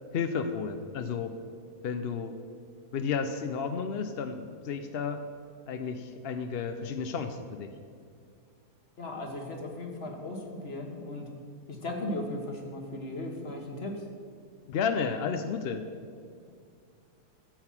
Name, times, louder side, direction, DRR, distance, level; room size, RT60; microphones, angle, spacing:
voice 1, 0.1-1.4 1.8-2.3 2.9-5.2 5.7-7.7 14.7-15.9, left 6 dB, 60° left, 8 dB, 0.6 m, -32 dB
voice 2, 9.0-11.3 11.7-14.1, left 1 dB, 40° left, 2 dB, 1.7 m, -37 dB
13.0 x 7.9 x 5.9 m, 2.3 s
omnidirectional pair, 1.7 m